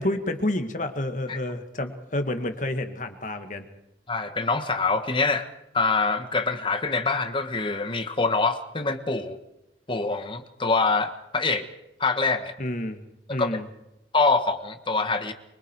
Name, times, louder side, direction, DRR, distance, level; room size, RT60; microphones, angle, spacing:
voice 1, 0.0-3.7 12.6-13.0 13.3-13.7, left 1 dB, 45° left, 7 dB, 2.0 m, -29 dB
voice 2, 4.1-5.5 5.7-9.4 9.9-11.7 12.0-12.5 13.3-13.6 14.1-15.3, left 3 dB, 30° left, 8 dB, 1.4 m, -25 dB
24.5 x 24.5 x 4.7 m, 0.89 s
head